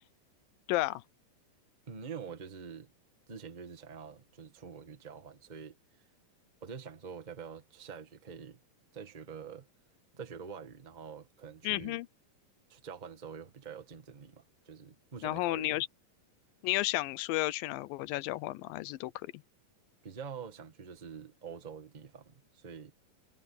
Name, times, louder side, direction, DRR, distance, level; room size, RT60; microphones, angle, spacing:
voice 1, 0.7-1.0 11.6-12.1 15.2-15.9 16.6-19.3, left 18 dB, 85° left, 2.4 m, -32 dB
voice 2, 1.9-2.9 3.3-5.8 6.6-8.6 8.9-9.7 10.1-12.0 12.7-15.8 20.0-22.9, right 6 dB, 45° right, 0.5 m, -46 dB
omnidirectional pair, 4.0 m